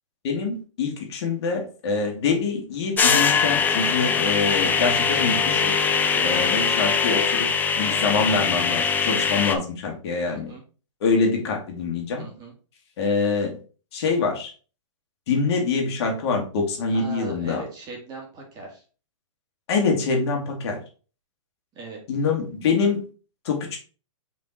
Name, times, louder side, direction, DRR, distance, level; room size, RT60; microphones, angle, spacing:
voice 1, 0.2-5.7 6.2-7.5 7.8-10.5 11.0-12.2 13.0-13.6 13.9-14.5 15.3-17.6 19.7-20.8 22.1-23.0 23.4-23.8, left 4 dB, 55° left, 1 dB, 2.1 m, -25 dB
sound 1, 3.0-9.5, left 6 dB, 10° left, 0.5 m, -22 dB
voice 2, 6.1-6.5 10.3-10.6 12.2-12.5 16.9-18.8 21.7-22.0, right 3 dB, 25° right, -1 dB, 2.5 m, -39 dB
5.2 x 4.4 x 4.3 m, 0.36 s
hypercardioid pair, 140°, 17 cm